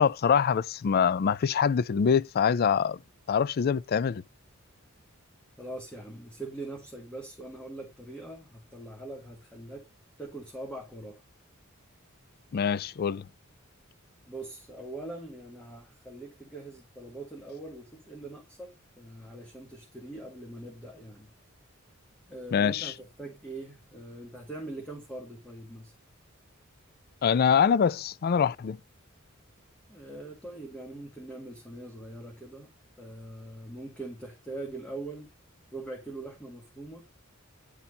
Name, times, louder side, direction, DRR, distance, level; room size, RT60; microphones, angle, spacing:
voice 1, 0.0-3.0 3.3-4.2 12.5-13.2 22.5-22.9 27.2-28.8, left 7 dB, 45° left, 0.3 m, -24 dB
voice 2, 5.6-9.9 10.2-11.2 14.3-21.3 22.3-25.9 29.9-32.7 33.0-35.3 35.7-37.0, right 2 dB, 5° left, 1.5 m, -42 dB
10.0 x 4.3 x 4.0 m
head